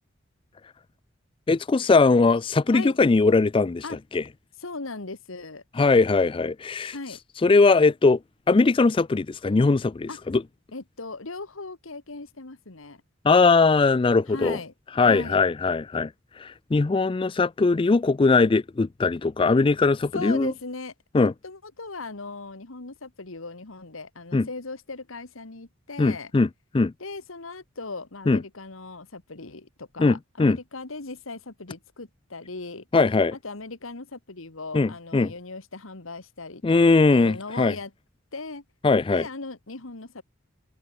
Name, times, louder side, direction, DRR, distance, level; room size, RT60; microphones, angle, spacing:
voice 1, 1.5-3.8 4.1-4.2 5.8-6.9 7.4-8.2 8.5-10.4 13.2-14.6 15.0-16.1 16.4-20.5 21.1-21.3 24.3-24.5 26.0-26.5 26.7-26.9 28.3-28.4 30.0-30.6 32.9-33.3 34.7-35.3 36.6-37.7 38.8-39.3, left 3 dB, 25° left, 0.3 m, -20 dB
voice 2, 4.6-5.6 6.9-7.2 10.1-10.2 10.7-13.0 14.3-15.4 20.1-26.3 27.0-32.9 33.3-37.9 38.3-38.6 39.1-40.2, left 3 dB, 90° left, 1.9 m, -38 dB
head